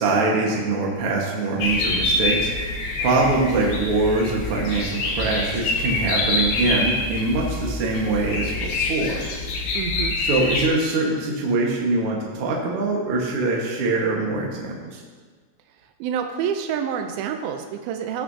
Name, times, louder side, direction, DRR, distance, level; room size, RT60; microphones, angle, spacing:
voice 1, 0.0-2.7 3.0-9.2 10.2-15.0, right 3 dB, 65° right, -2 dB, 1.4 m, -23 dB
sound 1, 1.6-10.7, left 2 dB, 70° left, 2.1 m, -26 dB
voice 2, 9.8-10.2 16.0-18.2, right 8 dB, 90° right, 5 dB, 2.1 m, -27 dB
17.5 x 6.1 x 2.8 m, 1.5 s
omnidirectional pair, 4.9 m